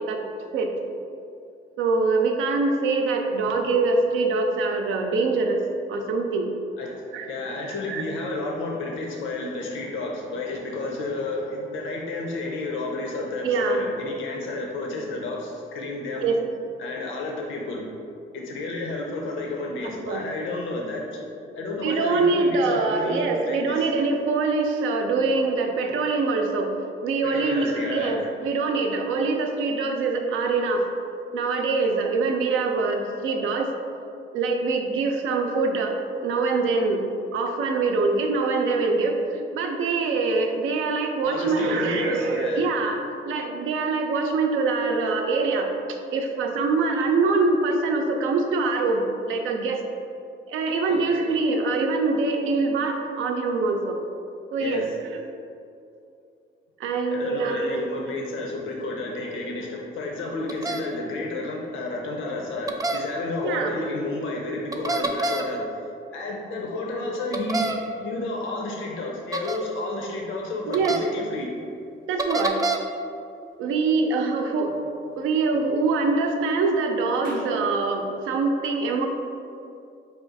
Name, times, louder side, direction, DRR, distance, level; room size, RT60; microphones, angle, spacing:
voice 1, 1.8-5.6 5.9-6.5 7.1-7.3 7.9-8.0 13.4-13.8 16.2-16.4 19.8-20.2 21.8-26.7 27.0-30.8 31.3-33.7 34.3-36.0 36.2-37.0 37.3-45.7 46.1-49.8 50.5-54.0 54.5-55.2 56.8-57.7 63.4-63.8 70.6-71.0 72.1-72.6 73.6-74.7 75.2-79.1, right 3 dB, 85° right, 3 dB, 0.5 m, -24 dB
voice 2, 7.3-16.3 16.8-17.9 18.3-23.8 27.2-28.1 41.2-42.6 50.9-51.0 54.6-54.9 57.1-65.6 66.1-71.5, left 2 dB, 80° left, 0 dB, 0.6 m, -31 dB
sound 1, 60.5-60.8 62.7-63.0 64.7-65.5 67.3-67.8 69.3-69.6 70.7-71.0 72.2-72.8, right 2 dB, 20° right, 0.3 m, -26 dB
sound 2, 69.0-77.7, right 3 dB, 45° right, 0.7 m, -47 dB
4.9 x 2.4 x 3.9 m, 2.5 s
cardioid pair, 90°, 20 cm